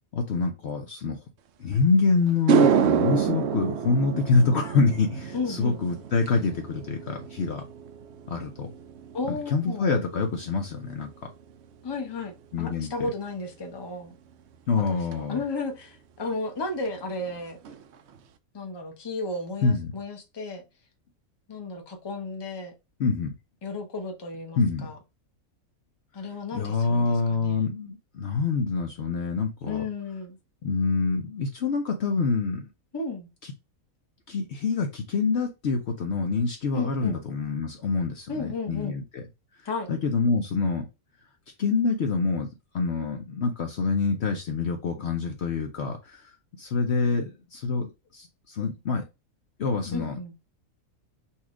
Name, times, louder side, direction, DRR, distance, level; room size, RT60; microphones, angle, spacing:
voice 1, 0.1-1.2 1.6-7.6 8.3-8.7 9.3-11.3 12.5-13.1 14.7-15.4 19.6-19.9 23.0-23.3 24.6-24.9 26.5-29.8 30.6-32.7 33.4-33.5 34.3-39.2 39.9-40.9 41.6-42.5 42.7-46.3 46.6-49.0 49.6-50.2, left 4 dB, 55° left, 0.9 m, -26 dB
sound 1, 1.8-1.9 2.3-10.8 11.1-11.5 15.1-15.2 16.9-17.0 17.2-17.4 17.6-18.2, right 7 dB, 65° right, 0.7 m, -28 dB
voice 2, 4.1-4.5 5.3-5.8 9.1-9.9 11.8-14.2 14.9-17.6 18.5-20.6 21.5-22.7 23.6-25.0 26.1-27.6 29.6-30.4 32.9-33.3 36.7-37.1 38.3-38.9 39.6-39.9 49.9-50.3, left 3 dB, 20° left, 0.7 m, -33 dB
4.2 x 2.4 x 4.7 m
omnidirectional pair, 1.5 m